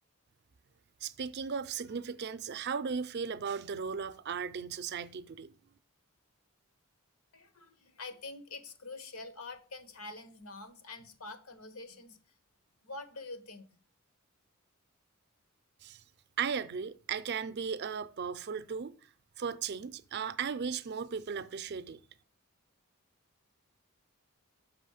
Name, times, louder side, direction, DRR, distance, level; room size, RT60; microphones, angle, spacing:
voice 1, 1.0-5.5 15.8-16.0 16.4-18.9 19.4-22.0, right 6 dB, 50° right, 0.4 m, -36 dB
voice 2, 7.3-12.2 12.8-13.7, left 3 dB, 85° left, 1.1 m, -46 dB
6.1 x 5.5 x 6.4 m
head